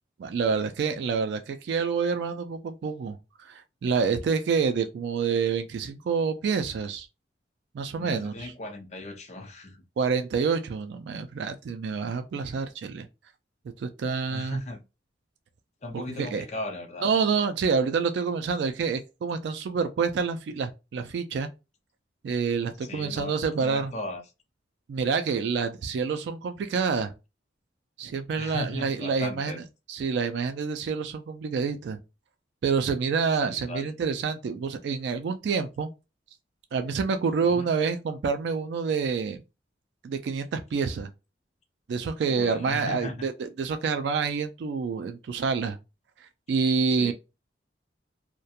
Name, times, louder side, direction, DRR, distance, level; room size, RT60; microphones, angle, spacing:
voice 1, 0.2-7.1 7.7-8.5 10.0-13.1 13.8-14.6 15.9-16.5 17.0-21.5 22.2-23.9 24.9-27.1 28.0-29.5 29.9-32.0 32.6-35.9 36.7-39.4 40.0-41.1 41.9-45.8 46.2-47.1, right 5 dB, 70° right, 0.3 m, -27 dB
voice 2, 8.0-9.8 14.2-14.8 15.8-17.1 22.9-24.2 28.3-29.6 33.4-33.9 37.5-37.7 42.2-43.3 46.9-47.1, left 1 dB, 35° left, 0.5 m, -37 dB
2.3 x 2.1 x 2.7 m
head